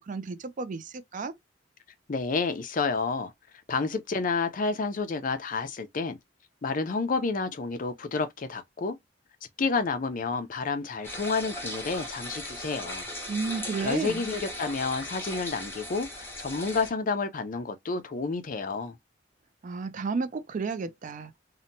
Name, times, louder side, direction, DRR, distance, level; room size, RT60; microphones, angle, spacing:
voice 1, 0.0-1.3 13.3-14.2 19.6-21.3, right 4 dB, 45° right, 0.4 m, -32 dB
voice 2, 2.1-3.3 3.7-6.2 6.6-9.0 9.6-13.1 13.8-19.0, left 4 dB, 45° left, 0.5 m, -30 dB
sound 1, 11.0-16.9, left 1 dB, 10° left, 1.0 m, -38 dB
2.8 x 2.1 x 2.5 m
head